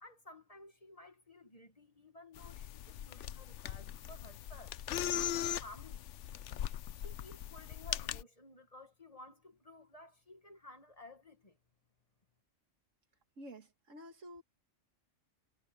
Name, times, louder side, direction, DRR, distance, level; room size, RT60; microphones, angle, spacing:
voice 1, 0.0-4.8 5.1-6.1 7.0-11.6, left 1 dB, 30° left, 1.6 m, -55 dB
sound 1, 2.4-8.2, left 11 dB, 70° left, 0.9 m, -40 dB
voice 2, 13.4-14.4, equal, 75° right, 2.4 m, -50 dB
omnidirectional pair, 1.3 m